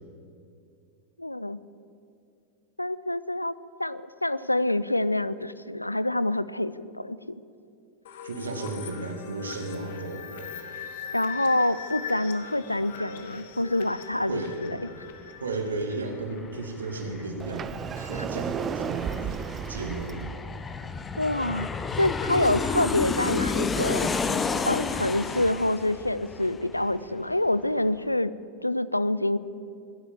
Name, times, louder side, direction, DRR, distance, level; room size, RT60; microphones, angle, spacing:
voice 1, 1.2-1.6 2.8-3.5 3.8-7.4 11.1-14.8 18.0-18.2 21.2-21.7 22.0-24.1 24.7-28.3 28.6-29.4, left 1 dB, 85° left, 17 dB, 0.4 m, -26 dB
sound 1, 8.0-16.7, left 7 dB, 55° left, 1.4 m, -41 dB
voice 2, 8.2-10.5 14.3-14.8 15.4-19.4 19.7-20.2, right 3 dB, 70° right, 4 dB, 2.1 m, -34 dB
Aircraft, 15.7-15.8 16.0-27.3 27.6-27.7, left 4 dB, 15° left, 0.9 m, -31 dB
Sliding door, 17.4-20.4, right 7 dB, 25° right, 0.6 m, -33 dB
19.5 x 10.5 x 7.2 m, 2.4 s
figure-of-eight pair, 90°, 0 cm